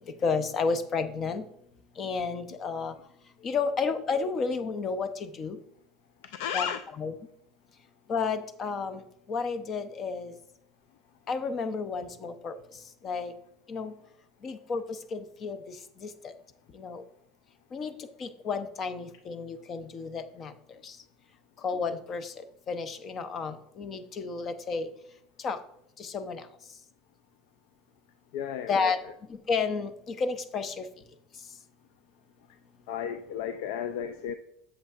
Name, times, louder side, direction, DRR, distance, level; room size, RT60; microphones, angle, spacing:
voice 1, 0.2-1.4 2.0-2.9 3.4-5.6 6.5-6.7 7.0-7.1 8.1-9.0 9.3-10.3 11.3-12.5 13.0-13.3 13.7-13.9 14.4-16.3 16.7-17.0 17.7-17.9 18.2-20.5 20.8-21.0 21.6-24.9 25.4-25.6 26.0-26.4 28.7-29.0 29.3-30.8, left 5 dB, 35° left, 11 dB, 0.7 m, -31 dB
voice 2, 6.2-6.8 28.3-28.9 32.9-34.3, left 8 dB, 75° left, 10 dB, 0.4 m, -33 dB
8.1 x 7.0 x 2.5 m, 0.76 s
supercardioid pair, 115°, 0 cm